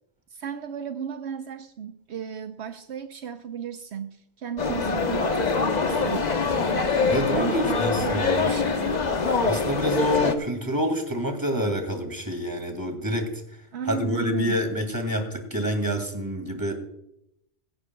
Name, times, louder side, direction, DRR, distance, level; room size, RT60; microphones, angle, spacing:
voice 1, 0.3-6.3 7.1-9.0 13.7-14.6, right 8 dB, 75° right, 8 dB, 1.0 m, -35 dB
sound 1, 4.6-10.3, left 4 dB, 40° left, 1.1 m, -24 dB
voice 2, 7.1-8.5 9.4-13.3 13.9-16.7, equal, 20° right, 5 dB, 2.3 m, -27 dB
17.0 x 16.0 x 2.3 m, 0.76 s
omnidirectional pair, 1.1 m